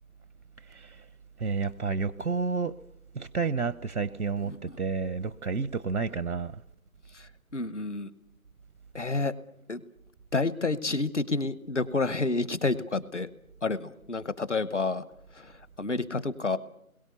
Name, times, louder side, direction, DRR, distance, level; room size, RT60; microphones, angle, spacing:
voice 1, 0.7-1.0 1.4-2.7 3.1-6.6, right 4 dB, 80° right, 0.8 m, -30 dB
voice 2, 7.5-8.1 8.9-9.3 9.7-9.8 10.3-13.3 13.6-15.0 15.4-15.5 15.8-16.6, left 3 dB, 55° left, 1.0 m, -29 dB
28.5 x 21.5 x 6.9 m
figure-of-eight pair, 175°, 43 cm